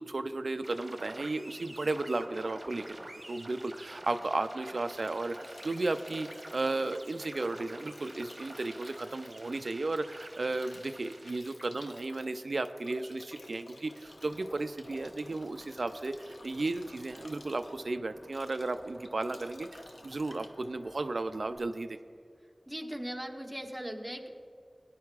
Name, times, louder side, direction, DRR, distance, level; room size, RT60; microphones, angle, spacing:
voice 1, 0.0-22.0, right 2 dB, 75° right, 9 dB, 0.3 m, -34 dB
sound 1, 0.6-11.4, right 1 dB, 40° right, 1.0 m, -48 dB
Bathtub (filling or washing) / Drip / Trickle dribble, 4.5-21.7, left 2 dB, 85° left, 0.8 m, -53 dB
sound 2, 14.0-21.6, equal, 25° left, 1.2 m, -57 dB
voice 2, 22.7-24.3, equal, 10° right, 1 dB, 1.3 m, -39 dB
18.5 x 10.0 x 2.4 m, 2.3 s
wide cardioid pair, 45°, 0 cm